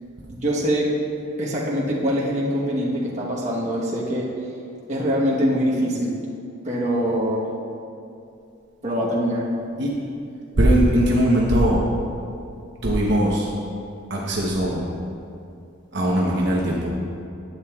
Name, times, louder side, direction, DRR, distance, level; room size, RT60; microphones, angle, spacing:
voice 1, 0.3-0.9 1.4-4.3 4.9-6.2 6.6-7.4 8.8-9.5, equal, 35° right, -5 dB, 1.1 m, -23 dB
voice 2, 10.6-11.9 12.8-13.5 14.1-14.8 15.9-16.9, right 1 dB, 55° right, -4 dB, 0.9 m, -20 dB
11.0 x 8.6 x 2.4 m, 2.6 s
head